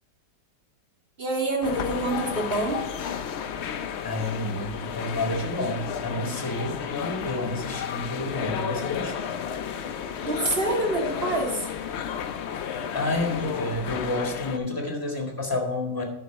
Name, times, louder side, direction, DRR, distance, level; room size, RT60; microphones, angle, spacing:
voice 1, 1.2-2.9 10.2-11.7, right 2 dB, 35° right, -1 dB, 2.1 m, -26 dB
sound 1, 1.6-14.6, left 8 dB, 85° left, 0.5 m, -32 dB
voice 2, 4.0-9.4 12.9-16.0, left 2 dB, 10° left, 0 dB, 1.9 m, -30 dB
10.0 x 6.0 x 4.6 m, 0.93 s
omnidirectional pair, 1.9 m